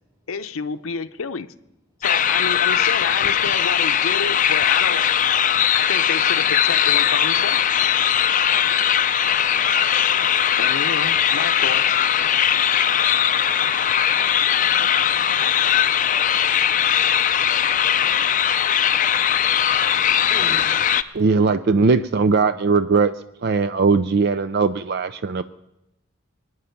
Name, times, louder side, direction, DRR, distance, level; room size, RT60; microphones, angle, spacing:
voice 1, 0.3-1.5 2.0-5.0 5.7-7.6 10.6-12.0, left 5 dB, 90° left, 0.6 m, -29 dB
sound 1, 2.0-21.0, left 9 dB, 40° left, 0.4 m, -19 dB
voice 2, 12.3-20.7, right 2 dB, 15° right, 3.7 m, -49 dB
voice 3, 21.1-23.1 23.4-25.4, right 4 dB, 50° right, 0.4 m, -19 dB
23.5 x 9.7 x 5.8 m
head